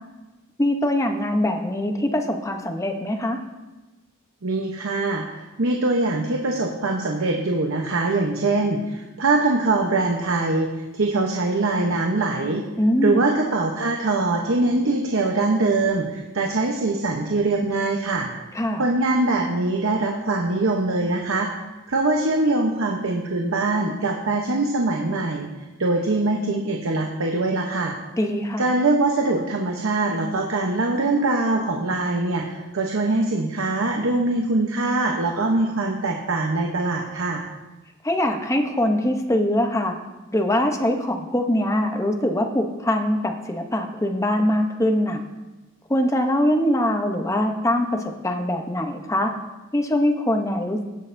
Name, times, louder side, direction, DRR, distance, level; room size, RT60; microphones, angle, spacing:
voice 1, 0.6-3.4 12.8-13.2 18.5-18.9 28.1-28.7 38.0-40.0 40.3-45.2 45.9-49.3 49.7-50.8, left 1 dB, 15° left, 4 dB, 0.7 m, -22 dB
voice 2, 4.4-10.7 10.9-12.6 13.0-18.3 18.8-21.5 21.9-25.5 25.8-27.9 28.6-37.4, right 2 dB, 65° right, 1 dB, 0.8 m, -23 dB
17.0 x 6.4 x 2.6 m, 1.1 s
head